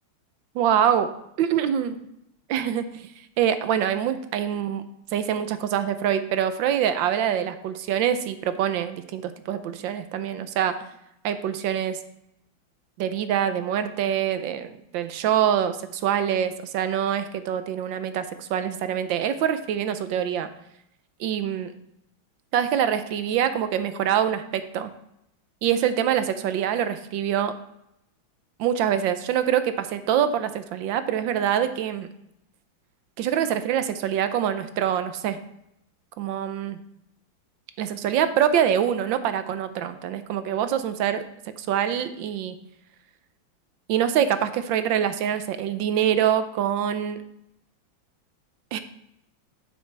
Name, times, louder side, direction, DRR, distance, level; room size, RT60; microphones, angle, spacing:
voice 1, 0.5-1.1 1.4-2.0 2.5-3.1 3.4-4.8 5.1-10.7 11.2-12.0 13.0-20.5 21.2-21.7 22.5-24.9 25.6-27.5 28.6-32.1 33.2-35.4 36.2-36.8 37.8-41.2 41.6-42.5 43.9-47.2 48.7-48.8, right 9 dB, 75° right, 10 dB, 1.4 m, -25 dB
9.2 x 7.7 x 3.3 m, 0.80 s
omnidirectional pair, 2.2 m